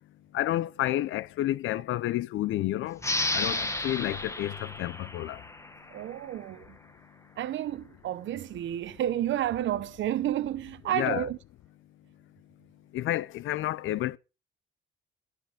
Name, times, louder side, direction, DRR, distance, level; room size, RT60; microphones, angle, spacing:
voice 1, 0.3-3.0 3.3-5.4 10.9-11.3 12.9-14.2, left 14 dB, 80° left, 0.7 m, -30 dB
sound 1, 3.0-6.2, left 2 dB, 15° left, 1.6 m, -32 dB
voice 2, 5.9-6.8 7.4-11.4, right 12 dB, 70° right, 0.9 m, -31 dB
13.5 x 9.3 x 5.1 m
cardioid pair, 90°, 20 cm